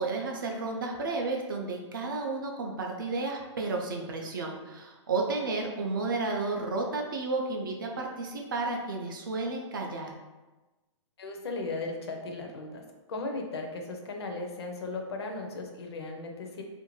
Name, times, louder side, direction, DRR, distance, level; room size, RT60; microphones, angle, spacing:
voice 1, 0.0-10.1, right 3 dB, 40° right, 1 dB, 0.4 m, -32 dB
voice 2, 11.2-12.8 13.1-16.6, left 3 dB, 55° left, 3 dB, 0.5 m, -36 dB
2.5 x 2.2 x 2.9 m, 1.2 s
hypercardioid pair, 175°, 16 cm